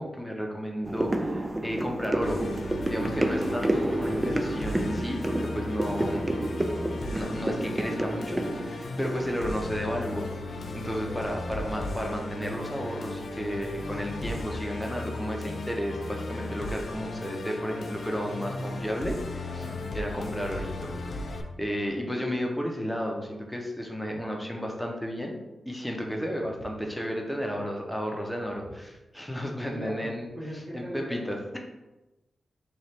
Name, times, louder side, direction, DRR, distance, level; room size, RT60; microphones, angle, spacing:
voice 1, 0.0-2.4 2.9-6.3 7.1-10.3 10.7-19.7 19.9-21.1 21.6-25.4 25.7-30.3 30.7-31.6, equal, ahead, 0 dB, 0.7 m, -33 dB
sound 1, 0.8-10.2 10.5-10.6, right 1 dB, 25° right, 0.3 m, -30 dB
Musical instrument, 2.2-21.4, left 2 dB, 60° left, 0.4 m, -36 dB
voice 2, 18.2-18.5 19.4-19.8 29.7-30.1 30.3-31.2, equal, 70° right, -10 dB, 1.1 m, -39 dB
3.2 x 2.4 x 4.2 m, 1.1 s
cardioid pair, 70°, 0 cm